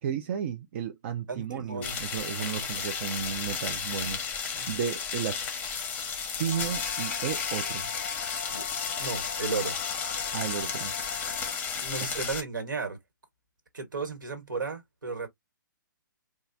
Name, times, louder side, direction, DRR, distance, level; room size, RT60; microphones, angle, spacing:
voice 1, 0.0-5.4 6.4-7.9 10.3-10.9 12.1-12.2, right 8 dB, 35° right, 0.4 m, -33 dB
voice 2, 1.3-1.9 2.4-2.7 4.5-4.8 8.5-8.6 9.0-9.8 11.8-13.0 13.7-15.3, right 4 dB, 70° right, 1.5 m, -34 dB
sound 1, 1.8-12.4, left 6 dB, 15° left, 0.8 m, -33 dB
sound 2, 6.5-11.5, left 8 dB, 40° left, 0.4 m, -41 dB
3.8 x 2.4 x 2.6 m
figure-of-eight pair, 130°, 11 cm